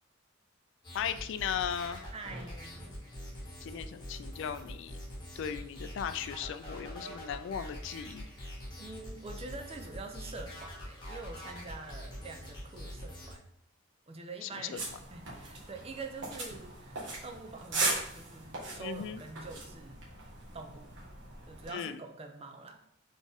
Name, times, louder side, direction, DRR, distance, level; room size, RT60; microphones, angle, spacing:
sound 1, 0.8-13.3, equal, 25° left, 1.6 m, -44 dB
voice 1, 0.9-2.0 3.6-5.0 5.4-8.3 14.4-14.8 18.8-19.2 21.7-22.0, left 8 dB, 65° left, 11 dB, 0.3 m, -37 dB
voice 2, 2.1-3.0 8.8-13.4 14.1-20.0 20.5-21.0 21.5-22.8, right 3 dB, 30° right, 4 dB, 0.5 m, -45 dB
sound 2, 14.8-21.7, right 2 dB, 65° right, 1.3 m, -38 dB
4.2 x 3.6 x 3.4 m, 0.72 s
head